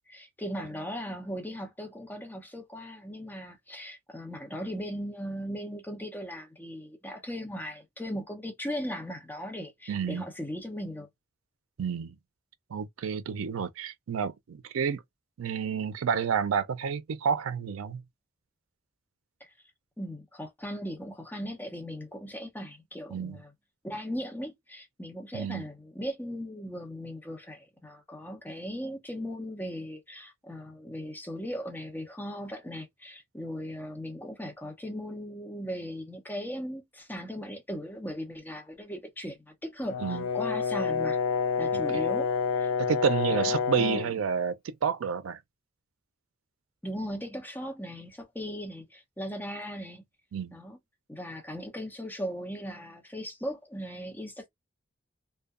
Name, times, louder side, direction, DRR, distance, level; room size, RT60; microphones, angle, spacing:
voice 1, 0.1-11.1 19.4-19.5 20.0-23.5 23.8-41.2 41.6-42.7 43.3-44.1 46.8-50.0 50.5-50.8 51.1-54.5, equal, 10° left, 0.7 m, -38 dB
voice 2, 9.9-10.2 11.8-12.2 12.7-15.0 15.4-18.0 23.1-23.4 25.3-25.6 40.0-40.2 41.7-41.8 42.8-45.4 50.3-50.6, right 7 dB, 90° right, 0.4 m, -30 dB
Brass instrument, 39.9-44.1, left 5 dB, 80° left, 0.4 m, -28 dB
2.7 x 2.2 x 2.4 m
head